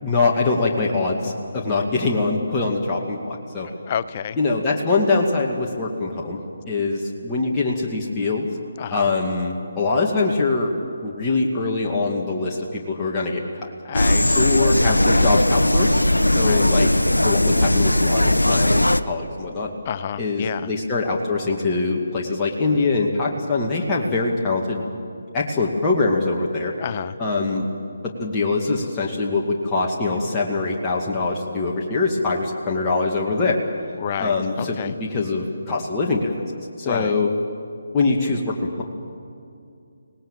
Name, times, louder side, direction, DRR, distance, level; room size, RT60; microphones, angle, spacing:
voice 1, 0.0-3.7 4.4-6.4 6.7-8.5 8.9-10.7 11.0-13.7 14.3-16.0 16.3-16.9 17.2-19.7 20.2-24.8 25.3-26.7 27.2-27.7 28.0-33.6 34.2-36.3 36.8-37.3 37.9-38.8, left 3 dB, 15° left, -3 dB, 2.2 m, -23 dB
voice 2, 3.9-4.4 8.8-9.1 13.8-15.3 16.4-16.7 19.8-20.7 26.8-27.2 34.0-34.9 36.8-37.1, left 9 dB, 35° left, 14 dB, 0.6 m, -30 dB
sound 1, 13.9-19.0, left 1 dB, 85° left, 0.8 m, -18 dB
25.5 x 19.0 x 7.5 m, 2.5 s
figure-of-eight pair, 150°, 0 cm